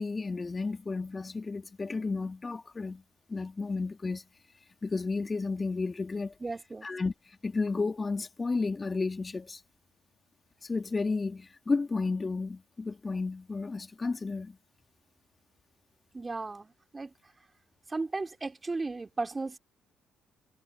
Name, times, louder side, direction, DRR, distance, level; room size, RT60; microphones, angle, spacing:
voice 1, 0.0-3.0 3.3-4.2 4.8-6.3 6.8-7.1 7.4-9.6 10.6-14.6, left 3 dB, 30° left, 2.4 m, -32 dB
voice 2, 6.4-6.9 16.1-17.1 17.9-19.6, right 3 dB, 25° right, 3.5 m, -35 dB
hypercardioid pair, 45°, 0 cm